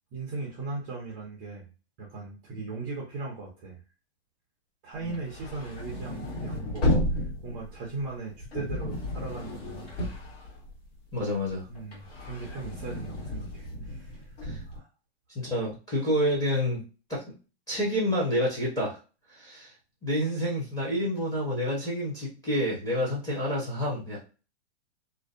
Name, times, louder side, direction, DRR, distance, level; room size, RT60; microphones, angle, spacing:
voice 1, 0.1-1.7 2.0-3.8 4.8-10.0 11.7-14.3 14.7-14.9, right 3 dB, 20° right, -3 dB, 0.4 m, -38 dB
sound 1, 5.0-11.1 11.5-14.8, left 1 dB, 65° left, 1.4 m, -33 dB
voice 2, 11.1-11.7 14.4-14.6 15.3-16.8 17.1-17.2 17.7-19.0 19.3-19.7 20.0-24.2, equal, 10° left, -6 dB, 0.7 m, -28 dB
2.6 x 2.0 x 2.4 m, 0.33 s
hypercardioid pair, 150°, 34 cm